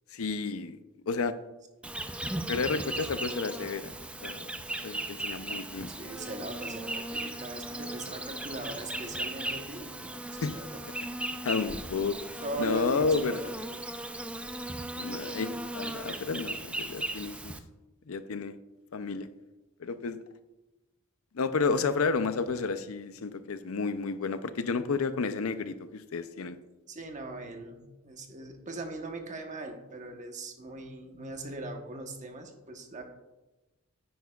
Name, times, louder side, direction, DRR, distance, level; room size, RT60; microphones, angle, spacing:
voice 1, 0.1-0.8 1.1-1.4 2.5-3.9 4.2-4.5 4.8-5.9 10.4-10.6 11.4-13.4 15.0-17.5 18.1-18.5 18.9-19.3 19.8-20.2 21.3-26.6, left 4 dB, 85° left, 12 dB, 0.6 m, -31 dB
Insect, 1.8-17.6, right 1 dB, 5° right, 0.4 m, -37 dB
voice 2, 6.0-10.8 12.4-13.8 26.9-33.0, right 2 dB, 35° right, 4 dB, 1.1 m, -40 dB
9.5 x 9.4 x 2.4 m, 1.0 s
head